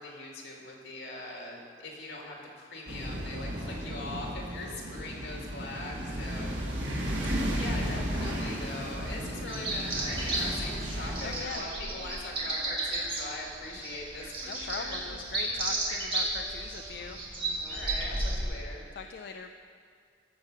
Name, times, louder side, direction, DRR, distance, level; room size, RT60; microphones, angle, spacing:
voice 1, 0.0-6.6 7.2-15.0 17.7-18.8, left 2 dB, 85° left, -1 dB, 2.2 m, -41 dB
sound 1, 2.9-11.4, equal, 85° right, 1.8 m, -34 dB
Wind instrument woodwind instrument, 8.7-18.6, right 2 dB, 55° right, 2.2 m, -52 dB
sound 2, 9.5-18.4, right 2 dB, 30° right, 1.6 m, -34 dB
voice 2, 11.2-11.7 14.5-17.2 19.0-19.6, left 5 dB, 60° left, 5 dB, 0.4 m, -40 dB
13.5 x 5.0 x 6.5 m, 2.2 s
head